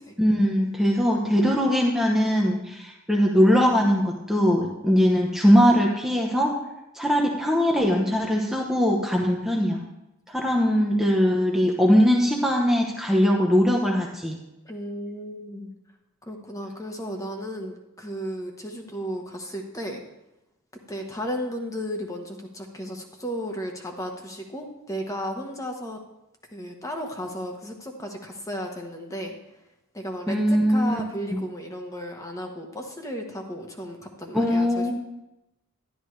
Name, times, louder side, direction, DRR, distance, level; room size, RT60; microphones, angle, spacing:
voice 1, 0.2-6.6 6.9-9.8 10.3-14.4 30.3-31.0 31.3-31.4 34.3-34.9, equal, ahead, -1 dB, 0.9 m, -21 dB
voice 2, 14.6-15.7 16.2-20.0 20.9-26.0 26.5-29.4 29.9-34.9, equal, 15° left, 3 dB, 1.2 m, -34 dB
11.5 x 11.5 x 3.3 m, 0.92 s
head